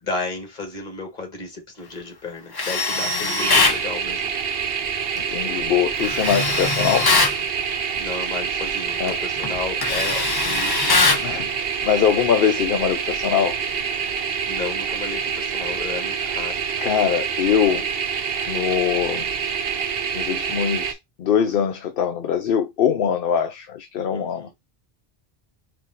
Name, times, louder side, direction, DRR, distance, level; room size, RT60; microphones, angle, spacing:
voice 1, 0.0-4.3 7.9-11.1 14.5-16.6 24.1-24.5, left 3 dB, 45° left, 1.5 m, -33 dB
Tools, 2.5-3.8 6.0-7.4 8.9-9.1 9.4-11.3, left 3 dB, 30° left, 0.5 m, -21 dB
voice 2, 3.1-3.6 5.3-7.1 9.0-9.2 11.2-13.6 16.8-17.8 18.5-19.2 20.1-24.5, left 8 dB, 65° left, 0.8 m, -22 dB
sound 1, 3.4-20.9, right 7 dB, 70° right, 0.9 m, -26 dB
4.6 x 2.5 x 3.7 m
omnidirectional pair, 1.1 m